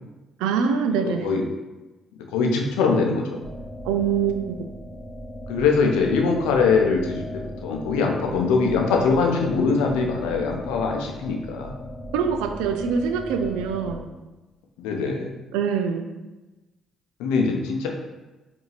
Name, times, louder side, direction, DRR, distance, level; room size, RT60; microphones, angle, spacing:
voice 1, 0.4-1.3 3.8-4.7 12.1-14.0 15.5-16.1, right 6 dB, 75° right, 7 dB, 0.4 m, -24 dB
voice 2, 1.0-1.4 2.3-3.4 5.5-11.7 14.8-15.3 17.2-17.9, left 4 dB, 75° left, 1 dB, 0.6 m, -22 dB
sound 1, 3.4-14.0, equal, 20° left, 1.3 m, -38 dB
4.7 x 2.7 x 3.3 m, 1.1 s
hypercardioid pair, 50°, 0 cm